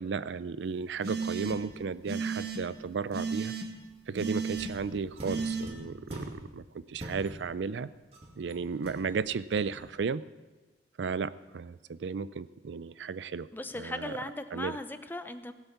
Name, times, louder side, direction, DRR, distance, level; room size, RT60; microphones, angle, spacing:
voice 1, 0.0-3.5 4.1-7.9 8.4-10.2 11.0-13.5 13.8-14.1 14.5-14.8, right 5 dB, 80° right, 16 dB, 0.4 m, -34 dB
sound 1, 1.0-1.7 2.1-2.6 3.1-3.7 4.2-4.7 5.2-5.6, right 5 dB, 60° right, 1.6 m, -33 dB
sound 2, 4.5-6.6 7.0-7.6 8.1-9.9, equal, 35° right, 2.4 m, -45 dB
voice 2, 13.5-15.5, left 1 dB, 10° left, 10 dB, 0.6 m, -38 dB
17.5 x 8.2 x 5.8 m, 1.2 s
head